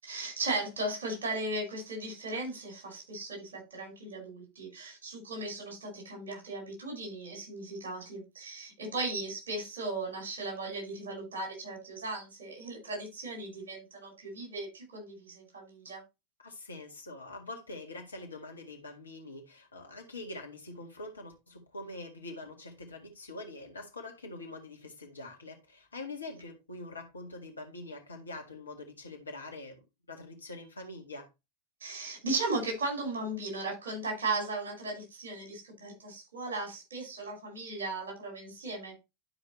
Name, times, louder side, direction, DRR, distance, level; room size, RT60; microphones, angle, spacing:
voice 1, 0.0-16.0 31.8-39.0, right 2 dB, 70° right, 5.2 m, -37 dB
voice 2, 16.4-29.8 30.1-31.3, left 2 dB, 80° left, 1.8 m, -44 dB
11.5 x 5.1 x 3.2 m
figure-of-eight pair, 85°, 0 cm